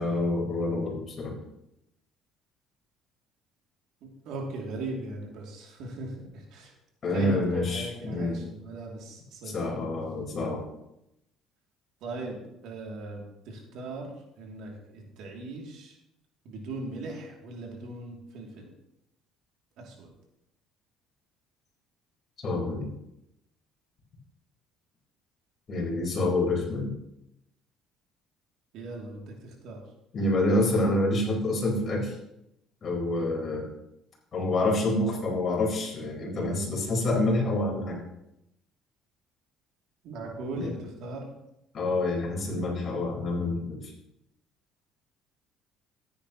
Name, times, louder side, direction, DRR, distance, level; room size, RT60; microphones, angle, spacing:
voice 1, 0.0-1.3 7.0-8.4 9.4-10.6 22.4-22.9 25.7-26.9 30.1-32.1 32.8-33.7 34.3-38.0 40.5-40.7 41.7-43.8, left 2 dB, 35° left, -2 dB, 4.2 m, -27 dB
voice 2, 4.2-6.7 7.1-9.7 12.0-12.4 12.6-14.1 14.4-15.9 16.4-18.7 19.8-20.1 28.7-29.3 29.6-29.8 40.0-41.3, right 2 dB, 65° right, 0 dB, 2.6 m, -38 dB
14.0 x 9.6 x 3.0 m, 0.84 s
cardioid pair, 130°, 0 cm